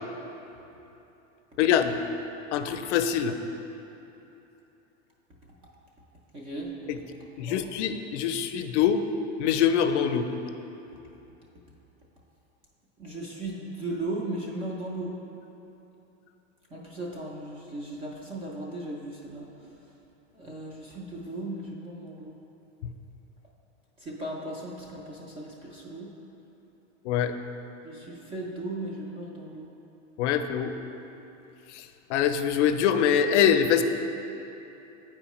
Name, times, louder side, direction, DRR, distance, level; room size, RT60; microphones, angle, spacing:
voice 1, 1.6-2.0 2.5-3.4 6.9-7.0 7.4-9.0 9.4-10.3 22.8-22.9 27.0-27.3 30.2-30.7 31.7-31.8 32.1-33.8, left 8 dB, 70° left, 8 dB, 0.5 m, -24 dB
voice 2, 6.3-6.7 7.4-7.6 13.0-15.1 16.7-19.5 20.3-22.4 24.0-26.1 27.8-29.7, right 1 dB, 15° right, -3 dB, 0.3 m, -36 dB
8.7 x 4.5 x 2.9 m, 3.0 s
supercardioid pair, 145°, 37 cm